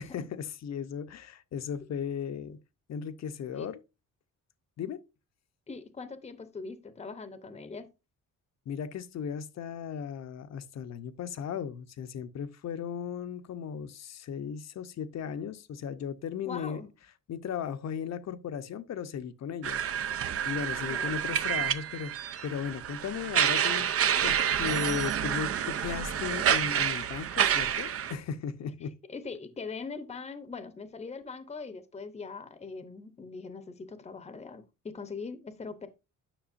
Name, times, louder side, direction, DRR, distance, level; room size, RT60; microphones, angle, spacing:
voice 1, 0.0-2.6 2.9-3.8 4.8-5.0 8.7-16.8 17.3-19.8 20.4-29.0, left 7 dB, 55° left, 0.8 m, -36 dB
voice 2, 5.7-7.9 16.5-16.9 20.8-21.1 29.1-35.9, left 4 dB, 20° left, 0.8 m, -41 dB
sound 1, 19.6-28.1, right 9 dB, 45° right, 0.6 m, -28 dB
10.0 x 6.0 x 2.6 m
cardioid pair, 135°, 31 cm